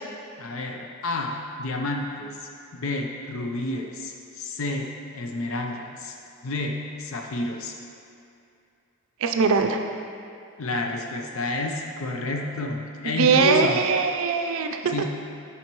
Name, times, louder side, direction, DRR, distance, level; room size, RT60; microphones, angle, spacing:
voice 1, 0.4-2.4 2.7-4.9 5.1-6.2 6.4-7.8 10.6-13.8 14.9-15.1, left 2 dB, 65° left, 2 dB, 0.5 m, -30 dB
voice 2, 9.2-9.8 13.0-14.9, right 5 dB, 65° right, 5 dB, 0.4 m, -21 dB
9.8 x 4.1 x 3.0 m, 2.5 s
head